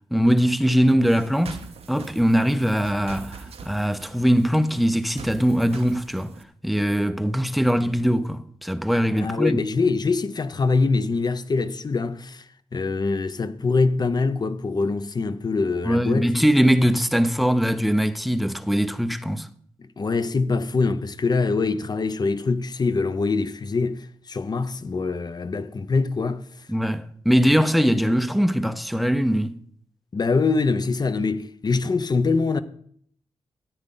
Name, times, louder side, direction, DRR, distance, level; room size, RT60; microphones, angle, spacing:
voice 1, 0.1-1.6 1.9-6.4 6.6-9.6 15.8-19.5 26.7-29.6, equal, ahead, 0.6 m, -21 dB
sound 1, 1.0-6.4, right 5 dB, 75° right, 0.8 m, -43 dB
voice 2, 9.1-12.4 12.7-16.3 20.0-26.4 30.1-32.6, left 4 dB, 40° left, 0.6 m, -24 dB
13.5 x 9.0 x 3.8 m
wide cardioid pair, 95°, 10 cm